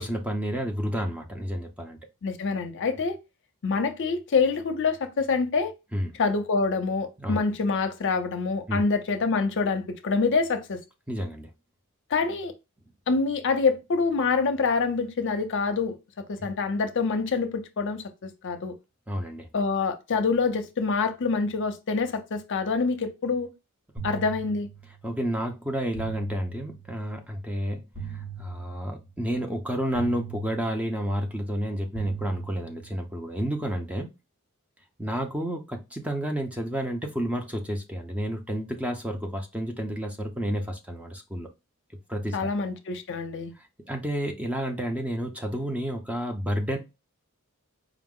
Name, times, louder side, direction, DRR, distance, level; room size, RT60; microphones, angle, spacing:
voice 1, 0.0-2.0 5.9-6.1 7.2-7.4 8.7-8.8 11.1-11.5 16.4-16.5 19.1-19.5 25.0-27.8 28.1-34.1 35.0-41.5 42.1-42.5 43.6-46.8, equal, 5° right, 0.5 m, -30 dB
voice 2, 2.2-3.2 3.6-5.7 6.2-10.8 12.1-12.5 13.1-16.0 16.3-18.7 19.5-23.5 24.0-24.7 42.3-43.5, left 4 dB, 60° left, 0.6 m, -26 dB
sound 1, 24.0-25.1 25.9-27.1 27.9-29.1 29.9-31.1 31.9-33.1, right 7 dB, 85° right, 2.5 m, -40 dB
4.8 x 2.0 x 3.6 m
head